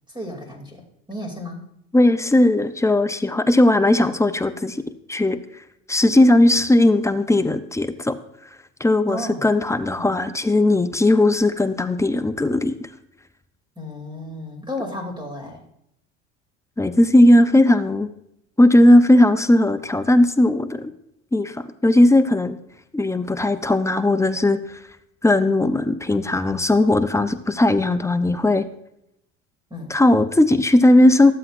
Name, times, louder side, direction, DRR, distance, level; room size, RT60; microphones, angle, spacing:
voice 1, 0.1-1.6 9.1-9.5 10.0-10.1 13.8-15.6 29.7-30.0, left 1 dB, 15° right, 2 dB, 2.6 m, -33 dB
voice 2, 1.9-4.8 5.1-5.4 5.9-8.2 8.8-12.8 16.8-18.1 18.6-20.9 21.3-21.6 21.8-22.6 22.9-24.6 25.2-28.6 29.9-31.3, left 1 dB, 10° left, 11 dB, 0.5 m, -17 dB
13.0 x 7.7 x 2.5 m, 0.78 s
hypercardioid pair, 75°, 36 cm